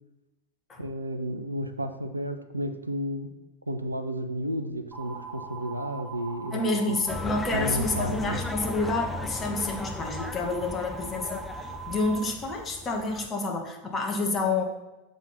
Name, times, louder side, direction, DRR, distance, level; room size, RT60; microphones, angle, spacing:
voice 1, 0.8-3.3 3.7-6.6 6.9-7.0 7.5-8.4, equal, 85° right, 8 dB, 0.5 m, -32 dB
sound 1, 4.9-12.2, right 3 dB, 20° right, 1.2 m, -41 dB
voice 2, 6.5-14.6, left 3 dB, 25° left, 2 dB, 1.3 m, -29 dB
sound 2, 7.1-13.3, left 2 dB, 10° left, 0.5 m, -37 dB
7.2 x 3.8 x 5.6 m, 1.0 s
figure-of-eight pair, 85°, 0 cm